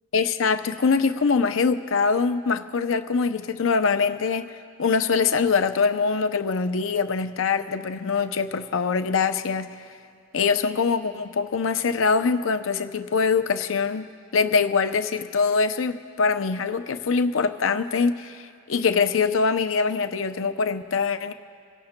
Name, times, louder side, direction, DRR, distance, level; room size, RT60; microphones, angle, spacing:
voice 1, 0.1-4.5 4.8-9.7 10.3-21.3, left 5 dB, 80° left, 9 dB, 0.5 m, -23 dB
27.0 x 17.5 x 2.2 m, 2.4 s
head